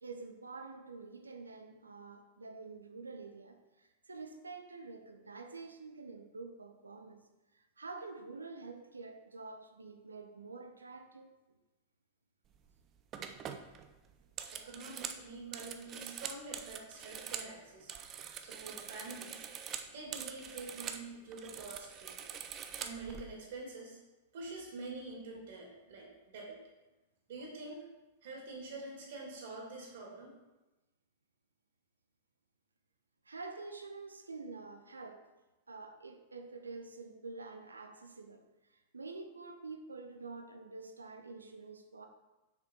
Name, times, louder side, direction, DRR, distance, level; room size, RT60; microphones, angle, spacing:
voice 1, 0.0-7.2 7.5-11.6 33.2-35.3 35.7-42.1, right 3 dB, 80° right, 6 dB, 0.8 m, -48 dB
sound 1, 12.5-12.7 13.1-17.5 17.8-21.1 21.3-23.2, right 8 dB, 30° right, 0.6 m, -44 dB
voice 2, 14.5-17.9 18.4-19.5 19.9-22.2 22.8-24.0 24.3-26.6 27.3-27.8 28.2-30.4, right 3 dB, 55° right, -1 dB, 2.7 m, -46 dB
6.8 x 6.3 x 4.6 m, 1.1 s
figure-of-eight pair, 95°, 0 cm